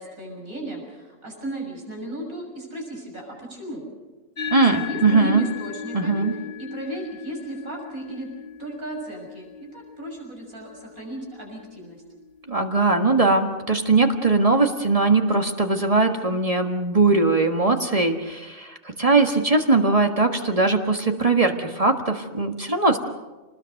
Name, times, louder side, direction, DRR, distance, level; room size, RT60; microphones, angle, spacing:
voice 1, 0.0-3.9 4.4-6.3 6.6-8.3 8.6-12.0, right 1 dB, 80° right, 0 dB, 6.9 m, -35 dB
sound 1, 4.4-13.1, left 7 dB, 40° left, 2.4 m, -37 dB
voice 2, 4.5-5.4 5.9-6.3 12.5-23.0, right 3 dB, 25° right, 4 dB, 1.6 m, -20 dB
28.0 x 20.0 x 6.6 m, 1.2 s
omnidirectional pair, 1.5 m